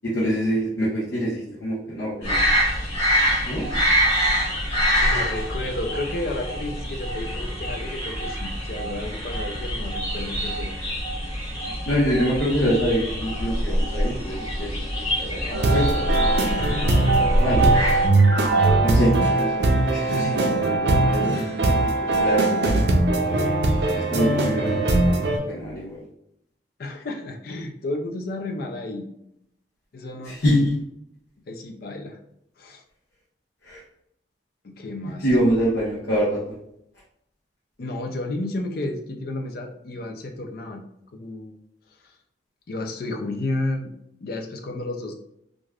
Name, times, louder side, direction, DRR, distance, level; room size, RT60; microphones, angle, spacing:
voice 1, 0.0-2.4 3.4-3.7 11.6-15.9 17.2-17.6 18.8-21.3 22.0-22.8 23.2-23.5 23.9-26.0 30.2-30.7 33.6-33.8 35.2-36.4, equal, 80° left, -7 dB, 0.8 m, -25 dB
sound 1, 2.2-18.1, equal, 35° left, 1.4 m, -25 dB
voice 2, 5.0-10.7 16.5-16.8 20.0-20.3 21.3-21.6 26.8-29.1 29.9-30.4 31.5-32.2 32.6-32.8 34.6-35.3 37.8-41.5 42.0-42.2 42.7-43.9 44.2-45.1, left 2 dB, 55° left, 3 dB, 0.4 m, -32 dB
sound 2, 15.5-25.4, right 2 dB, 60° right, 0.5 m, -20 dB
3.3 x 2.5 x 2.3 m, 0.77 s
head